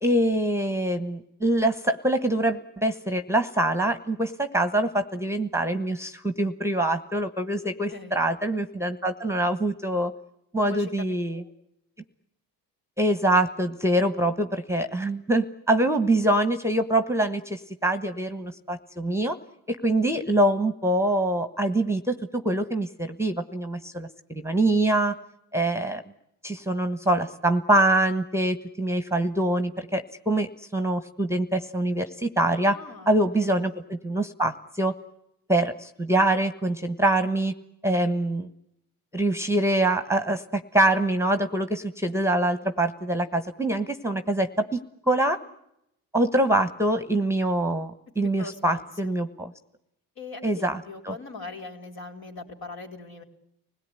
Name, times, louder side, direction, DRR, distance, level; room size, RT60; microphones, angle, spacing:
voice 1, 0.0-10.1 10.5-11.4 13.0-19.4 19.7-25.1 25.5-26.0 26.4-32.8 33.1-34.9 35.5-37.5 37.8-38.5 39.1-44.8 45.1-45.4 46.1-49.5 50.4-50.8 51.0-51.1, right 1 dB, 5° right, 10 dB, 1.3 m, -24 dB
voice 2, 7.9-8.2 10.7-10.9 11.3-11.5 32.7-33.8 48.4-49.1 50.2-53.2, left 3 dB, 55° left, 4 dB, 4.5 m, -41 dB
25.0 x 17.5 x 9.9 m, 0.81 s
supercardioid pair, 70°, 45 cm